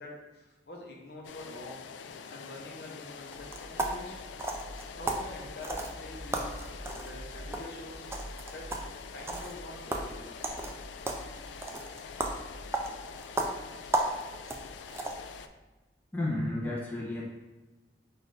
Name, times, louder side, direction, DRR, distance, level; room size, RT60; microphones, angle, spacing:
voice 1, 0.0-1.9 2.3-4.6 5.0-8.1 8.5-8.7 9.1-10.3, left 1 dB, 65° left, -2 dB, 0.9 m, -46 dB
sound 1, 1.2-15.5, left 6 dB, 90° left, 0.3 m, -46 dB
sound 2, 3.3-15.4, right 2 dB, 15° right, 0.3 m, -36 dB
voice 2, 16.1-17.3, left 1 dB, 10° left, -6 dB, 0.8 m, -32 dB
4.2 x 2.6 x 4.7 m, 1.2 s
head